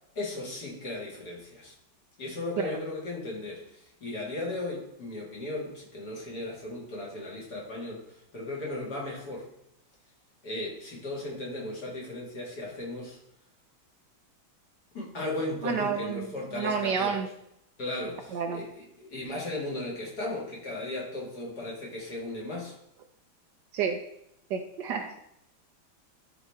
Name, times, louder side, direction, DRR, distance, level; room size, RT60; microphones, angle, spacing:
voice 1, 0.2-1.7 2.2-9.5 10.4-13.2 14.9-17.2 17.8-22.7, left 2 dB, 50° left, -3 dB, 2.4 m, -36 dB
voice 2, 15.6-17.3 18.3-18.6 23.7-24.0 24.5-25.2, right 6 dB, 70° right, 5 dB, 1.2 m, -30 dB
12.0 x 4.1 x 3.5 m, 0.79 s
omnidirectional pair, 2.2 m